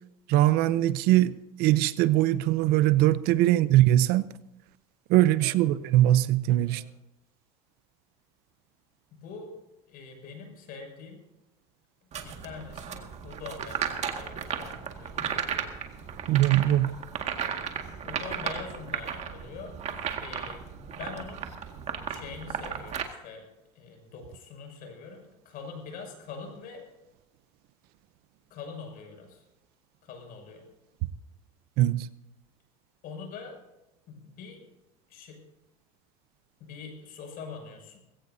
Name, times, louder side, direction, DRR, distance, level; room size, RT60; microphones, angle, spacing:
voice 1, 0.3-4.2 5.1-6.8 16.3-16.9 31.8-32.1, right 14 dB, 60° right, 0.7 m, -22 dB
voice 2, 9.1-9.5 9.9-11.2 12.1-15.7 18.0-19.7 20.2-20.6 20.9-21.4 22.1-23.4 23.7-26.8 28.5-29.4 30.0-30.6 33.0-33.6 34.1-34.6 35.1-35.4 36.6-38.0, left 5 dB, 50° left, 6.6 m, -43 dB
sound 1, 12.1-23.0, right 8 dB, 35° right, 1.9 m, -35 dB
20.0 x 17.0 x 2.7 m
supercardioid pair, 120°, 19 cm